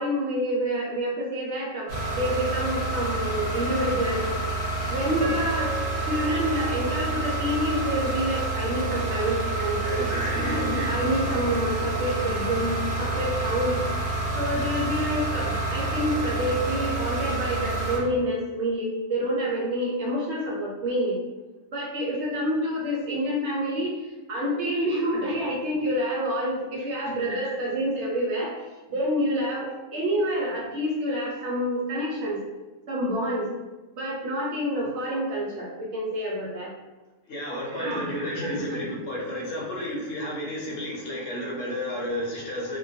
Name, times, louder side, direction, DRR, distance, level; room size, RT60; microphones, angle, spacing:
voice 1, 0.0-4.3 4.9-5.7 6.0-13.8 14.3-21.2 21.7-32.4 32.9-33.5 33.9-36.7 37.7-38.9, equal, 70° right, -4 dB, 0.8 m, -28 dB
sound 1, 1.9-18.0, right 2 dB, 40° right, 0.8 m, -28 dB
Piano, 5.2-8.2 8.8-8.9 9.5-9.8, right 1 dB, 90° right, 1.0 m, -36 dB
voice 2, 9.8-10.6 37.3-42.8, left 1 dB, 70° left, -3 dB, 0.9 m, -32 dB
2.2 x 2.2 x 2.7 m, 1.1 s
omnidirectional pair, 1.3 m